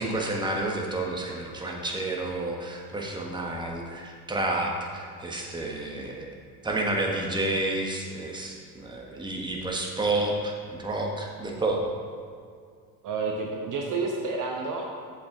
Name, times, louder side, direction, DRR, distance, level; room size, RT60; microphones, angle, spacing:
voice 1, 0.0-6.3 6.6-11.9, right 2 dB, 10° right, -1 dB, 1.4 m, -30 dB
voice 2, 13.0-14.8, right 4 dB, 40° right, 0 dB, 1.0 m, -30 dB
7.4 x 7.0 x 3.9 m, 2.2 s
figure-of-eight pair, 60°, 48 cm